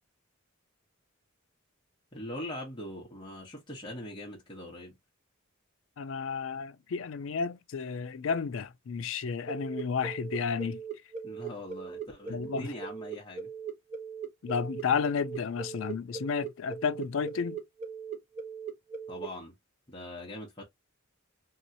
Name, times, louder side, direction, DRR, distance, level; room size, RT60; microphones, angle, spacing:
voice 1, 2.1-4.9 11.2-13.5 19.1-19.5 19.9-20.6, left 1 dB, 20° left, 1.1 m, -42 dB
voice 2, 6.0-10.8 12.3-12.7 14.4-17.6, left 6 dB, 65° left, 0.4 m, -32 dB
sound 1, 9.5-19.3, right 6 dB, 35° right, 0.8 m, -39 dB
3.1 x 2.8 x 2.7 m
head